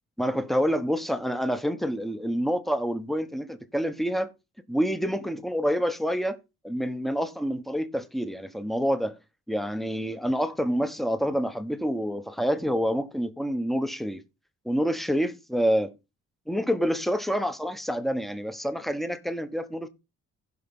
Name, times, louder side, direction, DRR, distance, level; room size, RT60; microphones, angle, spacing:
voice 1, 0.2-4.3 4.7-6.4 6.6-9.2 9.5-14.2 14.6-15.9 16.5-19.9, equal, ahead, 1.2 m, -27 dB
16.0 x 5.7 x 3.7 m
cardioid pair, 90°, 30 cm